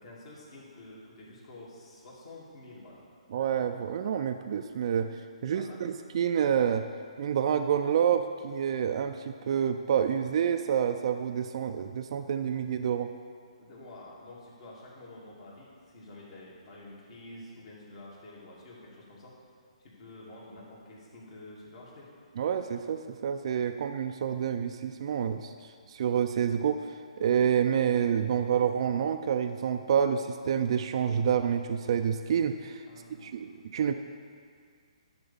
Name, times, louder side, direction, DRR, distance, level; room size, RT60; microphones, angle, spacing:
voice 1, 0.0-3.0 5.5-5.9 13.6-19.3 19.8-22.1 32.9-33.4, left 2 dB, 55° left, -6 dB, 2.7 m, -49 dB
voice 2, 3.3-5.1 5.4-6.8 7.2-13.1 22.4-32.9 33.2-33.9, right 8 dB, 50° right, 7 dB, 0.4 m, -28 dB
10.0 x 4.3 x 7.1 m, 2.1 s
hypercardioid pair, 145°, 4 cm